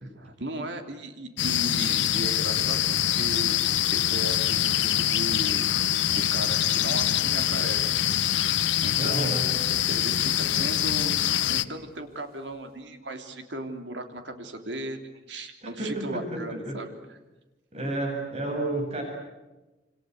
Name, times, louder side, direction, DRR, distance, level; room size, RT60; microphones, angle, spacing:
voice 1, 0.0-3.6 3.9-5.7 6.1-9.4 9.9-11.2 11.5-17.2, right 1 dB, 80° right, 5 dB, 3.4 m, -37 dB
sound 1, 1.4-11.7, left 11 dB, 90° left, 0.9 m, -24 dB
Domestic sounds home sounds, 1.4-12.8, right 3 dB, 55° right, 5.0 m, -49 dB
voice 2, 9.0-9.5 15.6-16.8 17.7-19.0, right 1 dB, 35° right, 2 dB, 7.6 m, -31 dB
27.5 x 26.0 x 8.0 m, 1.1 s
head